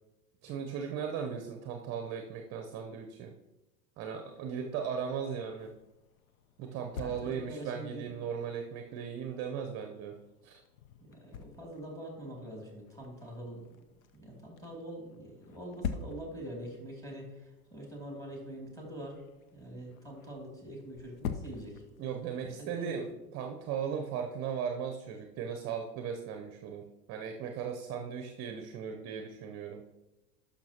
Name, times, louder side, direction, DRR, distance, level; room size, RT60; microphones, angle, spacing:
voice 1, 0.4-3.3 4.0-5.7 6.6-10.2 10.4-10.6 22.0-23.1 23.3-29.8, right 7 dB, 30° right, 4 dB, 0.8 m, -37 dB
sound 1, 4.2-23.1, left 7 dB, 60° left, 0.8 m, -47 dB
voice 2, 7.0-8.2 11.0-13.7 14.1-17.3 17.7-19.2 19.5-21.8 22.4-23.0, right 1 dB, 5° left, -1 dB, 2.7 m, -44 dB
11.5 x 5.8 x 2.9 m, 1.0 s
hypercardioid pair, 95°, 48 cm